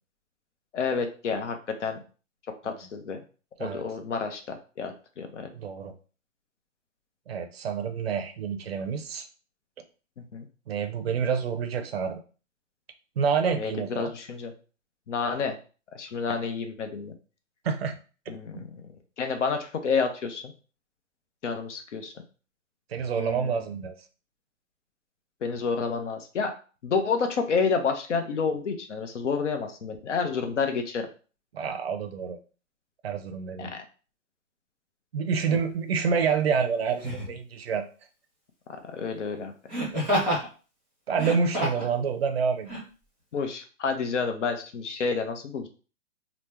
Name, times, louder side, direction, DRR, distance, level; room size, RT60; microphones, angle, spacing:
voice 1, 0.7-2.0 2.6-3.2 3.6-5.5 10.2-10.5 13.6-14.5 15.1-15.6 15.9-17.1 18.3-18.7 19.2-20.5 21.4-22.1 23.2-23.6 25.4-26.5 26.8-31.1 33.6-33.8 38.7-39.5 43.3-45.7, left 5 dB, 65° left, 6 dB, 0.7 m, -29 dB
voice 2, 5.5-5.9 7.3-9.3 10.7-12.2 13.2-14.1 17.6-17.9 18.5-18.6 22.9-23.9 31.5-32.4 33.0-33.7 35.1-37.9 41.1-42.8, right 6 dB, 50° right, 7 dB, 0.5 m, -28 dB
Laughter, 35.5-35.7 37.0-37.4 39.7-40.5 41.1-41.9 42.7-42.8, equal, 5° right, 0.6 m, -28 dB
2.9 x 2.0 x 3.3 m, 0.37 s
hypercardioid pair, 165°, 39 cm